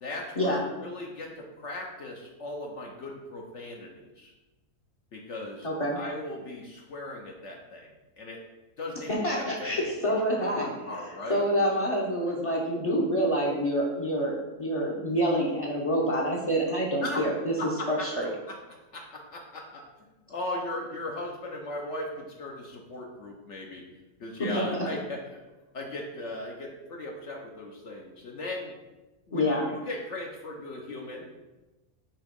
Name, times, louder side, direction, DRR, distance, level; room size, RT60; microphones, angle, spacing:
voice 1, 0.0-4.3 5.1-5.7 6.0-7.9 8.2-8.4 8.8-10.1 10.5-11.4 17.0-17.2 17.6-18.1 18.5-18.6 18.9-19.8 20.3-23.9 24.2-25.4 25.7-28.8 29.3-31.3, left 2 dB, 60° left, -1 dB, 1.1 m, -38 dB
voice 2, 5.6-6.0 9.1-11.0 11.3-17.5 17.9-18.3 24.4-24.7 29.3-29.7, equal, 30° left, -5 dB, 0.8 m, -27 dB
7.2 x 3.0 x 5.2 m, 1.1 s
omnidirectional pair, 1.5 m